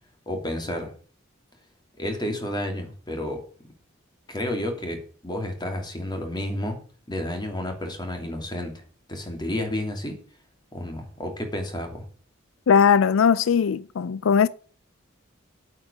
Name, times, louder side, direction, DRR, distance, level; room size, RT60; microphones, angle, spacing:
voice 1, 0.3-0.9 2.0-3.4 4.3-6.8 7.1-8.8 9.1-10.2 10.7-12.0, left 1 dB, 20° left, 2.9 m, -31 dB
voice 2, 12.7-14.5, left 6 dB, 85° left, 0.4 m, -19 dB
8.7 x 7.4 x 7.2 m
head